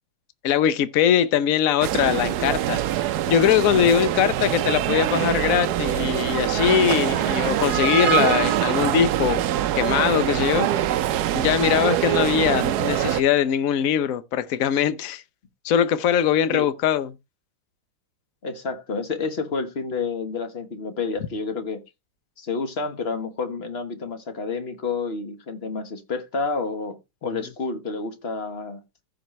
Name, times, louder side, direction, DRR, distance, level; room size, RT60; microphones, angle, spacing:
voice 1, 0.4-2.8 3.3-11.0 11.3-15.2 15.6-17.1, left 9 dB, 65° left, 0.8 m, -21 dB
sound 1, 1.8-13.2, right 12 dB, 80° right, 0.8 m, -24 dB
voice 2, 18.4-21.8 22.4-28.8, left 4 dB, 35° left, 1.2 m, -29 dB
15.0 x 5.1 x 3.1 m
omnidirectional pair, 2.4 m